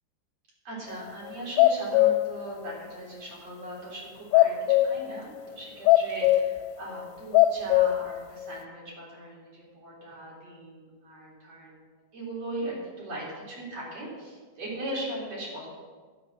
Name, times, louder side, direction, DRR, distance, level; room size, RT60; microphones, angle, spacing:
voice 1, 0.6-11.8 12.1-15.7, right 1 dB, 35° right, -6 dB, 4.2 m, -39 dB
sound 1, 1.3-2.3 2.7-2.8 4.3-5.0 5.9-6.7 7.0-7.1 7.3-8.2 8.4-8.6, left 14 dB, 85° left, 3.0 m, -20 dB
13.0 x 7.5 x 6.3 m, 1.4 s
omnidirectional pair, 5.3 m